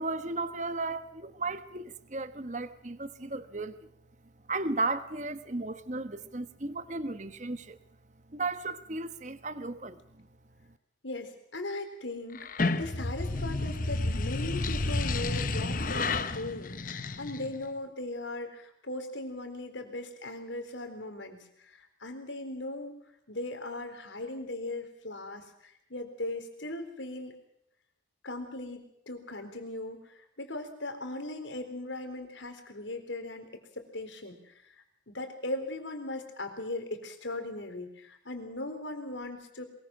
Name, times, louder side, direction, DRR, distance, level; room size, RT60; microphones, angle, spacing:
voice 1, 0.0-3.9 4.5-7.8 8.3-10.3, right 3 dB, 40° right, 12 dB, 1.2 m, -35 dB
voice 2, 11.0-23.0 23.3-27.3 28.2-34.8 35.1-39.6, left 2 dB, 80° left, 6 dB, 4.0 m, -39 dB
sound 1, 12.3-17.7, left 3 dB, 45° left, 1.0 m, -31 dB
22.5 x 21.5 x 6.2 m, 0.73 s
head